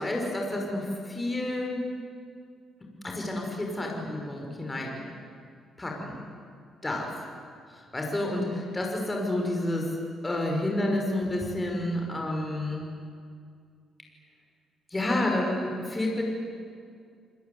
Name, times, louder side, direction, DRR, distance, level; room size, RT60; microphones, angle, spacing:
voice 1, 0.0-1.8 3.0-5.0 5.8-6.2 6.8-7.1 7.9-9.9 10.2-12.9 14.9-16.2, left 1 dB, 20° left, 0 dB, 5.7 m, -29 dB
28.0 x 20.5 x 9.6 m, 2.2 s
cardioid pair, 90°, 0 cm